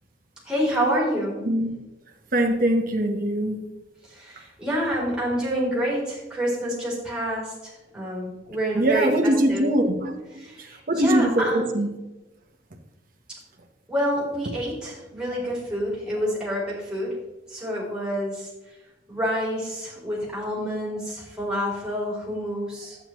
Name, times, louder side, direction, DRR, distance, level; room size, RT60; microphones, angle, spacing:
voice 1, 0.4-1.4 4.0-9.7 10.3-11.7 13.9-17.2 17.5-18.8 19.1-23.0, equal, 5° right, -6 dB, 3.4 m, -28 dB
voice 2, 2.3-3.6 8.7-10.1 10.6-11.9, right 1 dB, 50° right, 4 dB, 1.1 m, -22 dB
11.5 x 8.9 x 3.1 m, 1.1 s
head